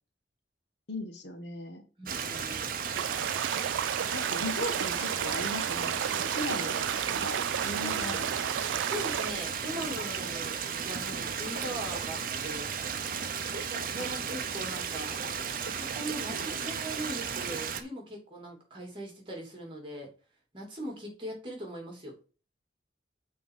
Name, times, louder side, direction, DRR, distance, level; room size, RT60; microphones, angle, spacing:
voice 1, 0.9-1.8 4.1-6.8 7.2-7.4 7.6-8.5 14.0-14.1 16.3-16.8, left 1 dB, 70° left, 6 dB, 1.5 m, -38 dB
voice 2, 2.0-2.7 7.8-8.5 8.8-12.7 13.5-15.2 15.6-20.1 20.5-22.1, right 1 dB, 25° right, 0 dB, 2.9 m, -40 dB
Stream, 2.1-17.8, right 6 dB, 50° right, 0.8 m, -34 dB
sound 1, 2.9-9.3, right 9 dB, 85° right, 0.4 m, -33 dB
6.4 x 4.5 x 5.5 m, 0.35 s
head